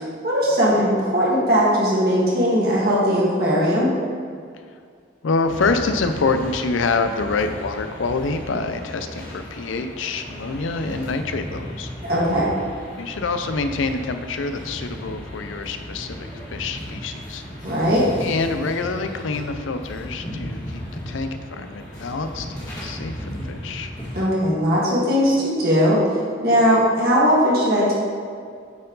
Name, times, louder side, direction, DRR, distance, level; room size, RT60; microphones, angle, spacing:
voice 1, 0.2-3.9 12.0-12.5 17.6-18.1 24.1-26.0 26.4-27.9, equal, 50° right, -7 dB, 1.8 m, -19 dB
voice 2, 5.2-11.9 12.9-17.4 18.2-23.9, left 3 dB, 80° left, 8 dB, 0.5 m, -26 dB
sound 1, 5.5-24.2, equal, 20° left, 1.6 m, -35 dB
9.3 x 4.5 x 3.9 m, 2.1 s
head